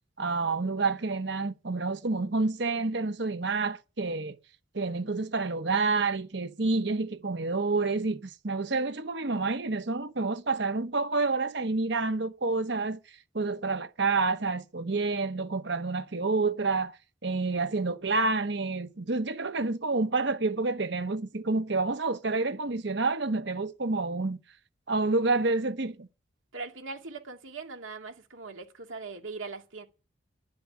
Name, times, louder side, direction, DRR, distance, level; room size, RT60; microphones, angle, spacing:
voice 1, 0.2-4.4 4.7-13.0 13.3-17.0 17.2-24.4 24.9-26.1, right 3 dB, 60° right, 1.0 m, -28 dB
voice 2, 26.5-29.9, right 4 dB, 90° right, 2.2 m, -40 dB
11.5 x 7.7 x 9.8 m
head